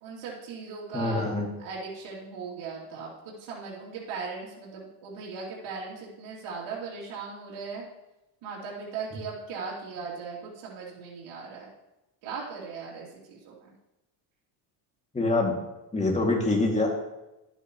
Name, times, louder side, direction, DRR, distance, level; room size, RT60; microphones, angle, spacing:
voice 1, 0.0-1.3 1.6-7.8 8.4-11.7 12.2-13.5, right 4 dB, 75° right, -5 dB, 3.0 m, -38 dB
voice 2, 0.9-1.5 15.1-15.5 15.9-16.9, left 2 dB, 15° left, 0 dB, 2.3 m, -25 dB
11.5 x 9.1 x 3.1 m, 0.96 s
cardioid pair, 110°, 49 cm